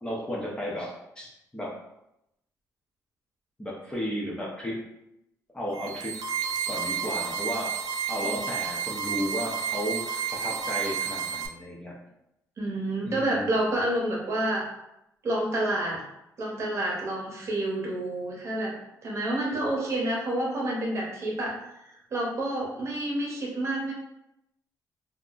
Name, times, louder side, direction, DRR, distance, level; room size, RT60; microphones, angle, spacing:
voice 1, 0.0-1.7 3.6-4.8 5.5-6.2 6.7-7.7 8.1-11.9 13.0-13.6, equal, 15° left, -4 dB, 0.5 m, -34 dB
sound 1, 5.7-11.5, right 7 dB, 65° right, 0.4 m, -31 dB
voice 2, 12.6-14.7 15.2-16.0 16.4-18.7 19.0-21.6 21.8-23.9, right 1 dB, 40° right, -2 dB, 0.8 m, -29 dB
2.4 x 2.0 x 3.7 m, 0.84 s
cardioid pair, 140°, 7 cm